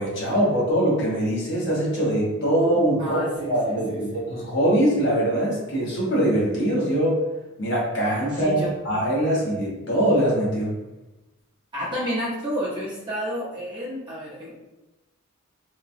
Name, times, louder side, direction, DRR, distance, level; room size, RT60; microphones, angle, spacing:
voice 1, 0.0-3.2 3.5-7.2 7.6-8.6 8.8-10.8, right 1 dB, 55° left, -6 dB, 1.0 m, -22 dB
voice 2, 3.0-4.2 8.3-8.7 11.7-14.5, equal, 20° right, -9 dB, 0.8 m, -31 dB
2.9 x 2.2 x 2.6 m, 1.0 s
head